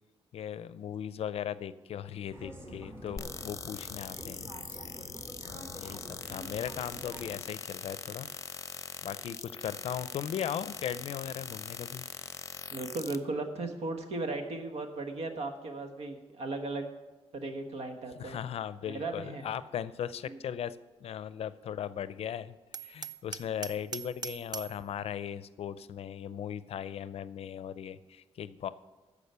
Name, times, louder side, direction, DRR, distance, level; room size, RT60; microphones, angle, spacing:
voice 1, 0.3-4.5 5.5-8.3 9.0-12.0 18.2-22.6 22.8-28.7, left 9 dB, 70° left, 16 dB, 0.5 m, -38 dB
sound 1, 2.3-7.4, equal, 20° right, 2.5 m, -47 dB
sound 2, 3.2-13.2, left 5 dB, 30° left, 0.7 m, -42 dB
voice 2, 12.7-16.9 17.3-18.4 18.9-19.5 20.2-20.4, right 2 dB, 80° right, 6 dB, 1.3 m, -36 dB
Hammer, 22.7-24.8, right 6 dB, 40° right, 0.5 m, -41 dB
14.0 x 5.0 x 6.8 m, 1.2 s
cardioid pair, 90°, 11 cm